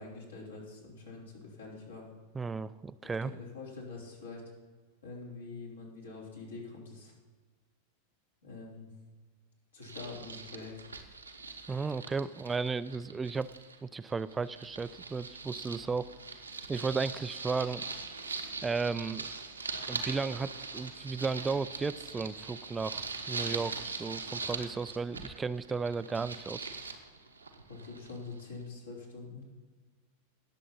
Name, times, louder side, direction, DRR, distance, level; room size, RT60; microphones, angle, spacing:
voice 1, 0.0-2.1 3.0-4.4 5.0-7.1 8.4-8.9 9.7-10.7 27.7-29.5, left 3 dB, 70° left, -3 dB, 3.6 m, -45 dB
voice 2, 2.3-3.3 11.7-13.5 13.8-16.1 16.7-17.9 18.6-19.3 19.9-26.7, right 4 dB, 15° right, 15 dB, 0.4 m, -34 dB
sound 1, 9.8-13.8 14.1-28.5, right 4 dB, 80° right, 1.1 m, -42 dB
18.5 x 7.4 x 4.1 m, 1.4 s
figure-of-eight pair, 90°, 0 cm